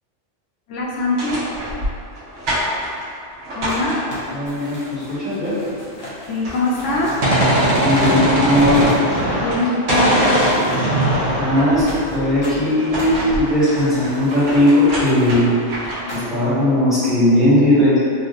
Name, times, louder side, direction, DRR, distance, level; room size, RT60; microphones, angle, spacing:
voice 1, 0.7-1.4 3.6-4.0 6.3-7.2 9.3-10.4, left 2 dB, 90° left, -4 dB, 0.9 m, -22 dB
sound 1, 0.9-4.5 5.9-6.0 6.2-7.1 7.6-10.3 10.7-12.0 12.6-16.2, equal, 70° right, 1.2 m, -29 dB
Crumpling crinkling, 3.7-9.7 10.1-11.1 11.9-15.4 16.1-16.5, equal, 60° left, 1.0 m, -36 dB
voice 2, 4.3-5.5 7.8-8.8 11.4-15.5 16.1-18.0, left 1 dB, ahead, -15 dB, 1.3 m, -17 dB
Gunshot gunfire, 6.8-9.6 9.9-12.6, right 1 dB, 40° right, 0.6 m, -19 dB
3.6 x 2.5 x 2.5 m, 2.4 s
omnidirectional pair, 1.2 m